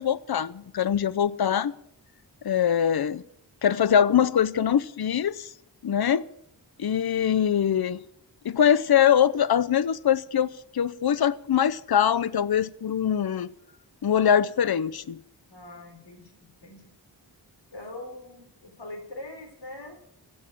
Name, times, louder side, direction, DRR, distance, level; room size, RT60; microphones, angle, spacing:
voice 1, 0.0-1.7 2.4-3.2 3.6-5.5 5.8-6.3 6.8-8.0 8.4-13.5 14.0-15.2, left 9 dB, 65° left, 0.6 m, -23 dB
voice 2, 15.5-16.2 16.6-16.8 17.7-19.9, left 2 dB, 85° left, 4.4 m, -42 dB
15.5 x 7.2 x 8.7 m
wide cardioid pair, 80°, 41 cm